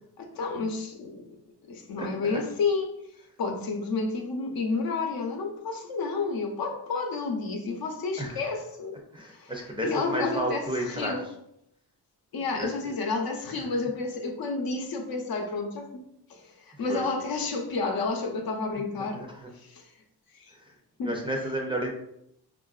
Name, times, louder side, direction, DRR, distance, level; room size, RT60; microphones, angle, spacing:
voice 1, 0.2-1.3 1.7-2.9 3.4-9.0 9.4-9.5 9.8-10.6 10.9-11.2 12.3-16.0 16.3-19.2 19.7-19.9 20.4-20.5 21.0-21.1, left 4 dB, 65° left, 3 dB, 0.7 m, -30 dB
voice 2, 2.0-2.4 8.2-8.4 9.1-11.3 12.6-12.9 13.5-13.8 16.7-17.1 18.8-19.5 20.5-20.8 21.0-21.9, right 1 dB, 15° right, 0 dB, 0.5 m, -33 dB
4.4 x 2.5 x 2.4 m, 0.77 s
cardioid pair, 100°, 39 cm